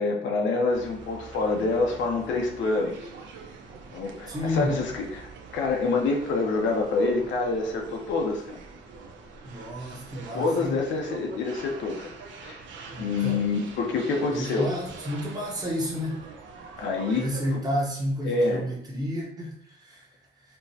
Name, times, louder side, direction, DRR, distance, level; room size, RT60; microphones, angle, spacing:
voice 1, 0.0-3.1 3.9-8.6 10.3-12.1 12.4-12.6 13.0-14.7 16.8-17.3 17.5-17.6 18.2-18.6, left 3 dB, 85° left, 1 dB, 0.6 m, -26 dB
sound 1, 0.7-17.6, right 4 dB, 90° right, 0.6 m, -44 dB
voice 2, 4.3-4.7 9.4-10.8 12.9-13.4 14.3-16.2 17.1-20.1, equal, 20° right, -3 dB, 0.8 m, -31 dB
4.4 x 2.1 x 2.7 m, 0.69 s
cardioid pair, 170°, 19 cm